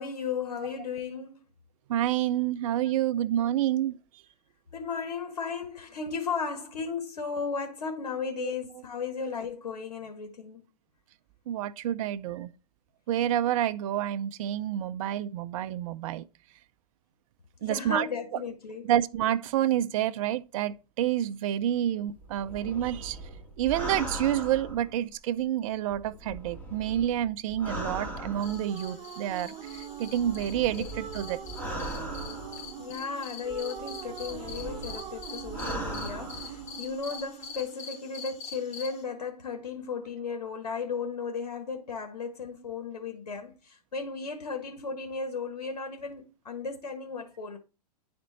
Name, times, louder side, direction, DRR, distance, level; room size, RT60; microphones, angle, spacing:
voice 1, 0.0-1.4 4.7-10.6 17.6-18.8 30.8-30.9 32.8-47.6, left 5 dB, 85° left, 1.6 m, -35 dB
voice 2, 1.9-4.0 8.4-8.5 11.5-12.5 13.1-16.2 17.6-18.1 18.8-23.2 23.6-31.4, right 11 dB, 55° right, 0.5 m, -28 dB
sound 1, 22.2-25.4 25.9-28.9 29.7-33.0 33.5-36.9 37.2-37.3, right 1 dB, 10° left, 3.0 m, -39 dB
sound 2, 28.0-39.0, right 9 dB, 30° right, 1.3 m, -43 dB
sound 3, 28.4-39.0, left 6 dB, 30° left, 2.2 m, -45 dB
10.0 x 4.3 x 4.1 m
hypercardioid pair, 115°, 20 cm